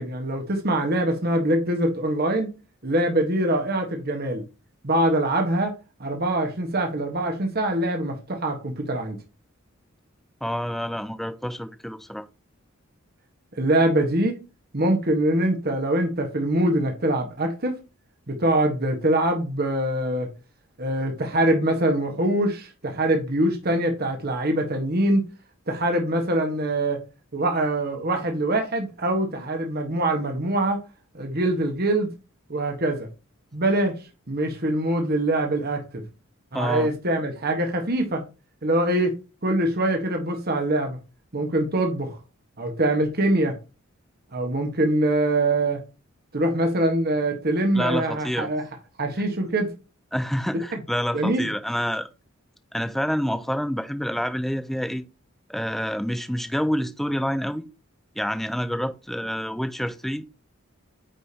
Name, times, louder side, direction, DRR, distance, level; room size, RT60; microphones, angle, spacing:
voice 1, 0.0-2.5 2.8-4.4 4.8-5.7 6.0-9.2 13.6-14.4 14.7-17.8 18.3-20.3 20.8-25.2 25.7-27.0 27.3-30.8 31.1-32.1 32.5-33.1 33.5-33.9 34.3-36.0 36.5-38.2 38.6-41.0 41.3-42.2 42.6-43.5 44.3-45.8 46.3-48.6 49.0-49.7 50.7-50.8 51.1-51.4, right 1 dB, 50° right, 1.4 m, -23 dB
voice 2, 10.4-12.3 36.5-36.9 47.7-48.5 50.1-52.1 52.7-55.0 55.5-57.7 58.2-60.3, equal, ahead, 0.5 m, -27 dB
9.0 x 5.1 x 2.8 m
head